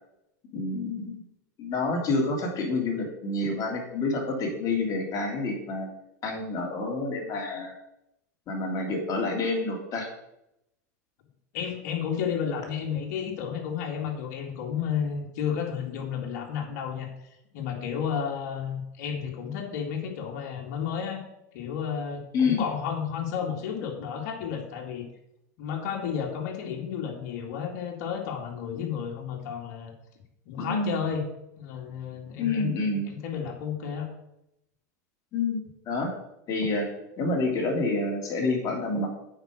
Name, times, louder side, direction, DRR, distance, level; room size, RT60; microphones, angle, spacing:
voice 1, 0.5-1.2 1.6-5.9 6.2-7.7 8.5-10.1 22.3-22.6 30.6-30.9 32.4-33.0 35.3-36.1 36.5-36.9 37.2-39.1, left 3 dB, 40° left, 0 dB, 3.0 m, -28 dB
voice 2, 11.5-17.1 17.5-21.2 21.5-25.1 25.6-29.9 30.5-31.2 31.6-34.1, left 7 dB, 65° left, 1 dB, 2.2 m, -32 dB
8.0 x 5.4 x 6.3 m, 0.84 s
hypercardioid pair, 100°, 9 cm